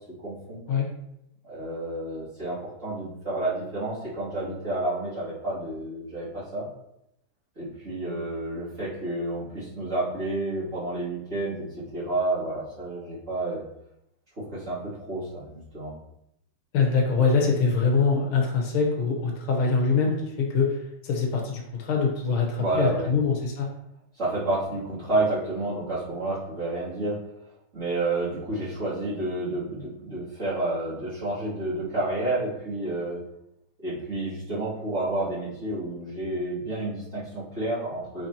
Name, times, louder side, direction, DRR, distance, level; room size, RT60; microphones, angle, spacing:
voice 1, 0.2-0.6 1.4-6.7 7.6-13.6 14.5-15.9 22.6-23.1 24.2-27.2 27.7-33.2 33.8-38.3, right 2 dB, 35° right, -11 dB, 3.1 m, -30 dB
voice 2, 16.7-20.8 21.0-23.7, left 4 dB, 80° left, 0 dB, 2.1 m, -24 dB
9.0 x 4.8 x 3.0 m, 0.81 s
omnidirectional pair, 2.4 m